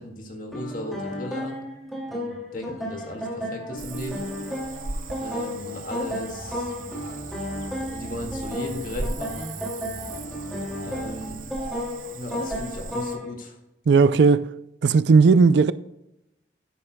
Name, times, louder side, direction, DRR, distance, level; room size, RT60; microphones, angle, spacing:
voice 1, 0.0-1.7 2.1-4.3 5.2-6.7 7.6-9.5 10.9-11.5 12.1-13.6, left 1 dB, 45° left, 2.0 m, -36 dB
sound 1, 0.5-13.3, left 1 dB, ahead, 2.4 m, -33 dB
Cricket / Frog, 3.8-13.2, right 3 dB, 45° right, 0.8 m, -38 dB
sound 2, 6.0-11.4, right 1 dB, 75° left, 1.9 m, -42 dB
voice 2, 13.9-14.5 14.8-15.7, right 4 dB, 65° right, 0.4 m, -16 dB
12.5 x 9.7 x 2.2 m
head